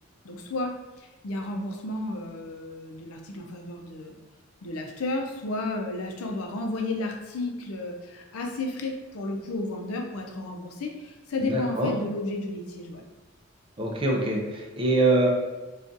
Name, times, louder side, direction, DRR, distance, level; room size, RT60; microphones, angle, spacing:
voice 1, 0.2-4.1 4.6-13.1, left 2 dB, 80° left, 1 dB, 0.5 m, -32 dB
voice 2, 11.4-11.9 13.8-15.3, right 2 dB, 25° right, -1 dB, 0.4 m, -24 dB
3.8 x 2.4 x 2.6 m, 1.2 s
head